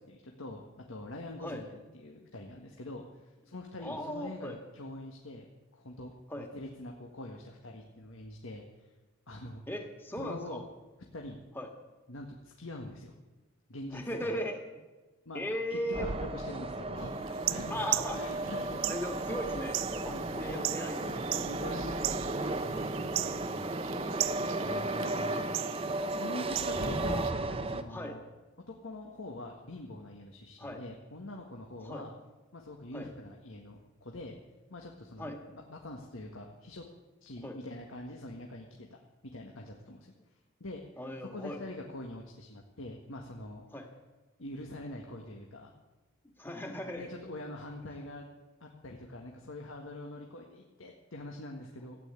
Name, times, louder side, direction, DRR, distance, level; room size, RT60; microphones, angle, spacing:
voice 1, 0.1-1.7 1.9-6.1 6.4-8.9 9.3-9.6 10.2-10.6 11.1-11.4 12.1-13.1 13.7-14.3 15.2-19.1 20.0-20.7 21.0-23.7 24.3-25.5 25.8-28.2 28.7-32.1 32.5-34.3 34.7-36.8 37.2-38.9 39.2-40.0 40.6-40.8 41.3-43.6 44.4-45.7 46.9-48.3 48.6-52.0, left 1 dB, 75° left, 1 dB, 1.6 m, -44 dB
voice 2, 3.8-4.6 6.3-6.5 9.7-10.6 11.6-11.7 13.9-14.6 15.3-16.1 17.7-18.2 18.9-21.1 24.6-24.9 26.8-27.4 27.9-28.2 30.6-30.8 31.8-32.1 32.9-33.1 35.2-35.4 37.4-37.6 41.0-41.6 43.7-43.9 46.4-47.1, equal, 10° left, 4 dB, 1.8 m, -38 dB
sound 1, 15.9-27.8, right 2 dB, 25° right, 0.8 m, -34 dB
sound 2, 17.3-27.3, right 16 dB, 70° right, 0.4 m, -38 dB
15.5 x 9.0 x 9.7 m, 1.2 s
head